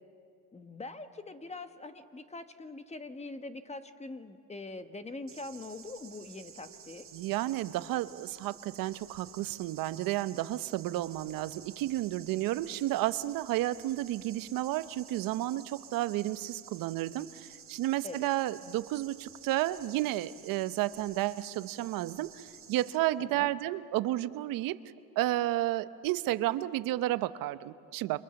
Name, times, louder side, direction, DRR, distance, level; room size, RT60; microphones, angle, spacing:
voice 1, 0.5-7.1 18.0-18.3 23.2-23.5, left 2 dB, 20° left, 9 dB, 1.5 m, -43 dB
sound 1, 5.3-23.0, right 8 dB, 40° right, 1.8 m, -52 dB
voice 2, 7.1-24.8 25.2-28.2, right 15 dB, 75° right, 14 dB, 0.8 m, -32 dB
29.5 x 26.0 x 7.1 m, 2.5 s
cardioid pair, 110°, 34 cm